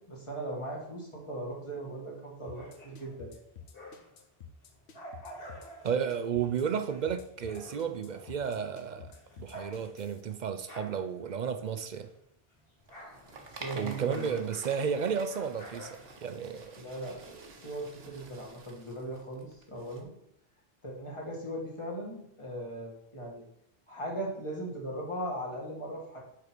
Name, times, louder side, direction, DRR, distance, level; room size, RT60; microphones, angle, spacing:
voice 1, 0.0-3.4 13.5-14.4 16.8-20.1 20.8-23.4 23.9-26.2, right 1 dB, 30° left, -3 dB, 1.7 m, -39 dB
sound 1, 2.4-4.2 4.6-12.2 12.5-16.7, equal, 65° left, 2.4 m, -51 dB
sound 2, 2.5-10.2, left 7 dB, 85° left, 1.1 m, -50 dB
voice 2, 5.8-9.1 9.4-12.1 13.8-15.9 16.2-16.7, right 7 dB, 55° right, 8 dB, 0.6 m, -32 dB
sound 3, 12.8-20.0, right 4 dB, 70° right, 1.1 m, -49 dB
5.5 x 4.1 x 6.0 m, 0.77 s
omnidirectional pair, 1.1 m